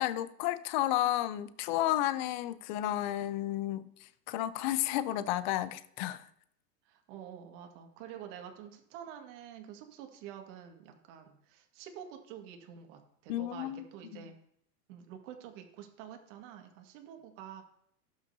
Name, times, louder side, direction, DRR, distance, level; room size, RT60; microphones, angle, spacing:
voice 1, 0.0-6.2 13.3-13.8 14.1-14.2, left 14 dB, 30° left, 0.4 m, -32 dB
voice 2, 6.9-14.3 14.9-17.6, right 9 dB, 45° right, 1.9 m, -48 dB
17.0 x 5.8 x 2.7 m
hypercardioid pair, 105°, 49 cm